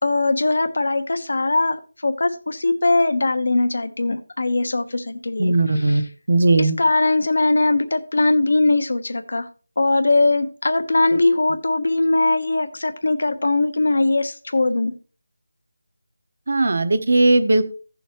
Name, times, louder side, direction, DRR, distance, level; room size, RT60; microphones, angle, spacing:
voice 1, 0.0-6.1 6.6-9.5 9.8-14.9, left 2 dB, 60° left, 1.2 m, -20 dB
voice 2, 5.4-6.0 6.3-6.8 16.5-17.7, right 2 dB, 50° right, 1.2 m, -17 dB
15.5 x 7.0 x 3.0 m
figure-of-eight pair, 175°, 0 cm